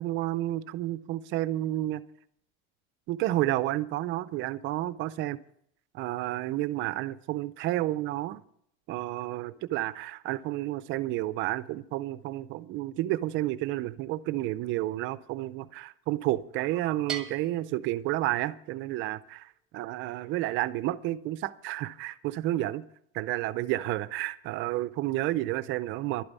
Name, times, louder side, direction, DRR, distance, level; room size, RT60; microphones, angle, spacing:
voice 1, 0.0-2.0 3.1-5.4 5.9-8.4 8.9-19.4 19.7-22.8 23.1-26.2, right 16 dB, 35° right, 0.5 m, -31 dB
Bell, 17.1-18.8, right 6 dB, ahead, 1.1 m, -41 dB
11.5 x 8.8 x 8.1 m
cardioid pair, 165°, 33 cm